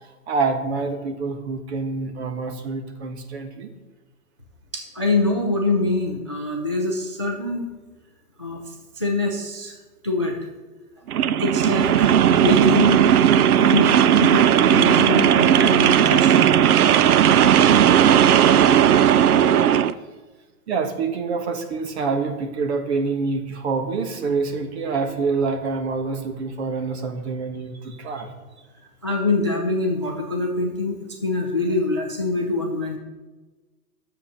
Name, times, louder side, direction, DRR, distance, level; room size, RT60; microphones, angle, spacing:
voice 1, 0.3-3.7 20.7-28.3, right 4 dB, 45° right, 6 dB, 1.5 m, -26 dB
voice 2, 4.7-7.7 8.4-9.7 10.0-10.4 11.4-13.1 13.6-16.6 29.0-33.0, left 2 dB, 20° left, 1 dB, 0.4 m, -24 dB
sound 1, 11.1-19.9, right 9 dB, 70° right, 0.7 m, -16 dB
10.0 x 7.0 x 6.7 m, 1.2 s
hypercardioid pair, 155°, 46 cm